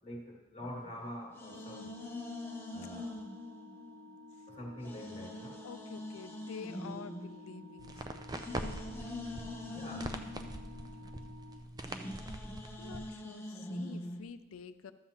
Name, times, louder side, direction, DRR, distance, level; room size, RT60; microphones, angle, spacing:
voice 1, 0.0-1.9 2.7-3.2 4.5-5.6 9.6-10.3, equal, 25° left, -1 dB, 1.8 m, -45 dB
sound 1, 0.6-4.4 4.8-14.2, left 1 dB, 10° left, 0.7 m, -44 dB
Organ, 1.4-12.3, left 2 dB, 90° right, 0.5 m, -54 dB
voice 2, 5.6-8.9 10.7-11.4 12.5-14.9, left 5 dB, 80° left, 12 dB, 0.5 m, -49 dB
sound 2, 7.8-13.1, right 2 dB, 20° right, 0.4 m, -43 dB
13.0 x 7.6 x 2.9 m, 1.2 s
head